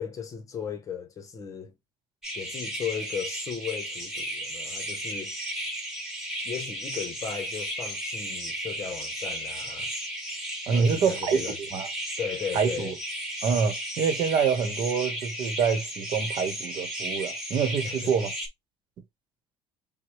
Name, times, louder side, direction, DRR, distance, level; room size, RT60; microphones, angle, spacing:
voice 1, 0.0-1.7 2.3-5.3 6.4-9.9 10.7-11.6 12.2-12.9 17.8-18.1, left 7 dB, 40° left, 1.0 m, -36 dB
sound 1, 2.2-18.5, right 1 dB, 5° right, 1.6 m, -34 dB
voice 2, 10.7-11.4 11.7-11.9 12.5-12.9 13.4-18.3, right 6 dB, 60° right, 1.0 m, -26 dB
6.0 x 2.2 x 3.1 m
cardioid pair, 120°, 9 cm